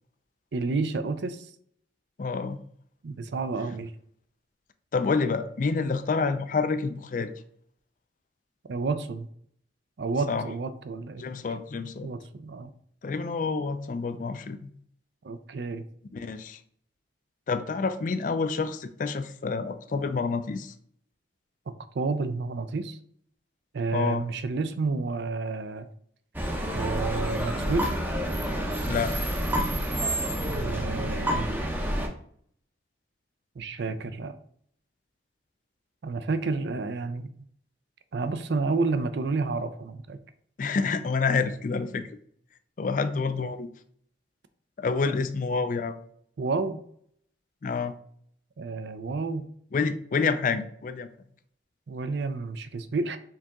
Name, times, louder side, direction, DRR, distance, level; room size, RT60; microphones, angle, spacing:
voice 1, 0.5-1.5 3.0-3.9 8.7-9.3 10.0-11.2 12.0-12.7 15.2-15.8 21.9-23.0 23.7-25.9 26.7-27.9 30.5-31.5 33.6-34.4 36.0-37.3 38.1-40.2 46.4-46.8 48.6-49.5 51.9-53.2, right 3 dB, 70° right, 11 dB, 0.4 m, -30 dB
voice 2, 2.2-2.6 4.9-7.3 10.3-10.5 11.2-12.1 13.0-14.7 16.1-16.6 17.5-20.7 23.9-24.2 28.9-29.2 40.6-42.1 42.8-43.7 44.8-46.0 47.6-47.9 49.7-51.1, left 4 dB, 45° left, 11 dB, 0.3 m, -28 dB
sound 1, 26.3-32.1, equal, 10° right, 0.6 m, -28 dB
4.6 x 2.9 x 3.6 m, 0.63 s
head